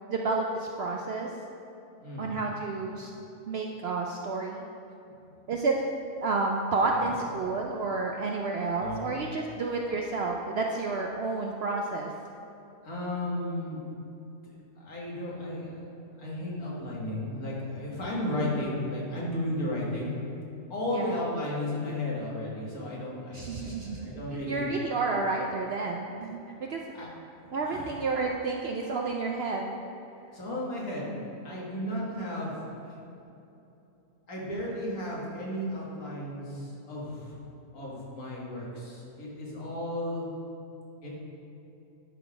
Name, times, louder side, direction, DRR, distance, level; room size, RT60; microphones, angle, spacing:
voice 1, 0.1-1.3 2.2-3.1 3.5-4.6 5.5-5.7 6.2-12.1 20.9-21.2 23.3-24.1 24.5-26.4 26.7-26.8 27.5-29.8, right 3 dB, 65° right, 1 dB, 0.6 m, -30 dB
voice 2, 2.0-2.4 5.1-5.2 6.9-7.1 8.8-9.0 12.8-13.8 14.4-14.5 14.8-15.8 16.2-20.2 20.7-24.7 26.9-27.1 27.4-27.9 30.3-31.1 31.4-32.6 32.8-32.9 34.3-37.3 37.7-40.3 41.0-41.1, left 1 dB, 80° left, -5 dB, 2.2 m, -34 dB
11.5 x 3.9 x 4.8 m, 2.8 s
omnidirectional pair, 1.5 m